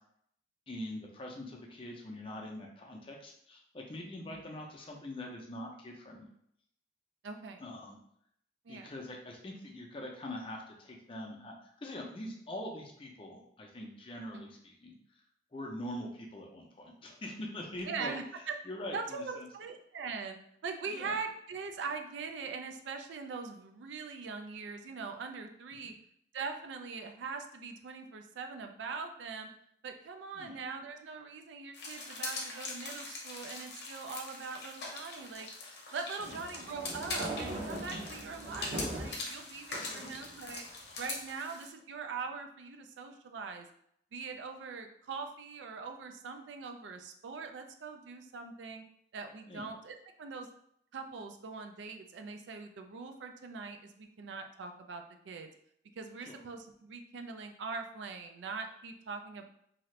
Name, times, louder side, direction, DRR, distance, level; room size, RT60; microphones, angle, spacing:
voice 1, 0.7-6.3 7.6-8.0 8.7-15.0 15.5-18.1 18.7-19.5 20.9-21.2 25.8-25.9 30.4-30.6 36.2-36.4 39.8-40.1 49.5-49.7 56.2-56.4, left 1 dB, 30° left, 0 dB, 0.5 m, -43 dB
voice 2, 7.2-7.6 8.6-8.9 14.3-14.5 17.9-18.5 18.9-20.4 20.6-25.9 26.3-29.5 29.8-35.5 35.9-40.6 41.0-43.7 44.1-48.8 49.1-50.5 50.9-55.5 56.0-59.4, right 4 dB, 85° right, 5 dB, 0.4 m, -42 dB
sound 1, 31.7-41.7, left 3 dB, 60° left, 0.7 m, -42 dB
sound 2, 36.2-39.2 39.7-40.6, right 1 dB, 40° right, 0.6 m, -40 dB
2.7 x 2.4 x 3.1 m, 0.71 s
head